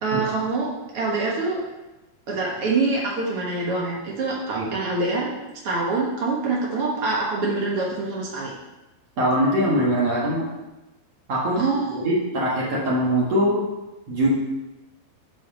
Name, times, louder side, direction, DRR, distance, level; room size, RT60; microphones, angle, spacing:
voice 1, 0.0-1.6 2.3-5.3 5.6-8.5 11.6-12.0, right 3 dB, 85° right, -3 dB, 1.2 m, -25 dB
voice 2, 9.2-10.5 11.3-11.6 12.0-13.7 14.1-14.3, equal, 55° right, -5 dB, 2.0 m, -22 dB
9.9 x 5.0 x 6.2 m, 1.0 s
omnidirectional pair, 4.8 m